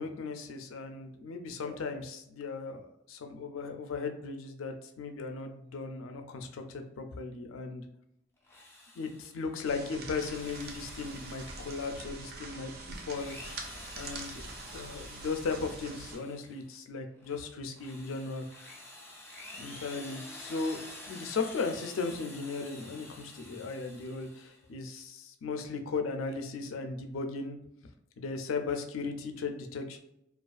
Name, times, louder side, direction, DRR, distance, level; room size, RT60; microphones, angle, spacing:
voice 1, 0.0-7.9 9.0-12.7 13.0-13.4 13.9-14.4 14.7-18.5 19.5-20.8 21.1-27.6 28.2-30.0, left 4 dB, 85° left, 6 dB, 0.4 m, -37 dB
Drill, 8.4-9.5 10.0-12.4 13.0-16.7 17.2-24.6, left 2 dB, 10° left, 0.3 m, -49 dB
sound 1, 9.6-16.2, right 3 dB, 50° right, 0.4 m, -44 dB
2.4 x 2.3 x 2.3 m, 0.79 s
head